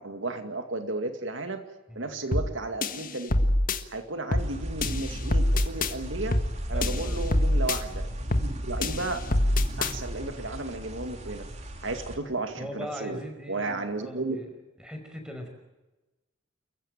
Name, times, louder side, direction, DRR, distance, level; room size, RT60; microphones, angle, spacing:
voice 1, 0.0-1.6 1.9-3.3 3.9-6.4 6.7-8.1 8.4-9.2 9.8-11.5 11.8-13.2 13.5-14.4, right 2 dB, 80° right, 7 dB, 2.2 m, -33 dB
sound 1, 2.3-2.5 2.8-3.8 4.3-4.5 4.8-5.9 6.3-6.5 6.8-7.8 8.3-8.5 8.8-9.9, left 1 dB, 45° left, 1.6 m, -25 dB
sound 2, 4.4-12.2, equal, 35° right, 2.8 m, -35 dB
voice 2, 6.7-7.2 12.6-14.5 14.8-15.5, equal, 5° right, 4 dB, 5.3 m, -40 dB
29.0 x 15.0 x 9.0 m, 1.1 s
head